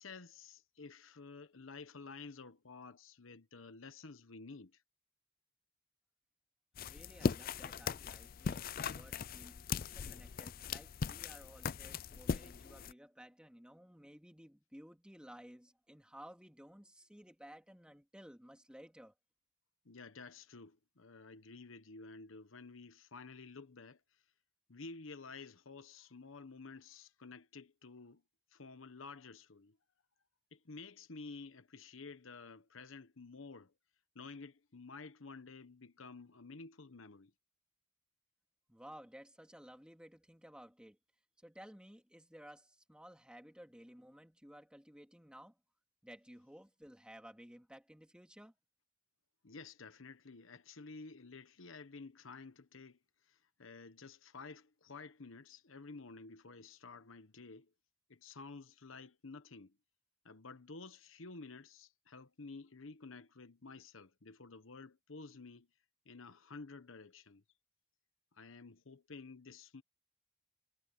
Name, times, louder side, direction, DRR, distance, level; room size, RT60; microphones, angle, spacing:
voice 1, 0.0-4.8 19.8-24.2 24.7-28.2 28.5-29.8 30.5-33.7 34.1-37.3 49.4-57.7 58.1-59.8 60.2-65.7 66.0-67.4 68.3-69.8, left 4 dB, 85° left, 1.1 m, -52 dB
sound 1, 6.8-12.9, left 5 dB, 45° left, 0.4 m, -39 dB
voice 2, 6.8-19.1 38.7-41.0 41.4-45.6 46.0-48.5, equal, 5° right, 2.8 m, -56 dB
head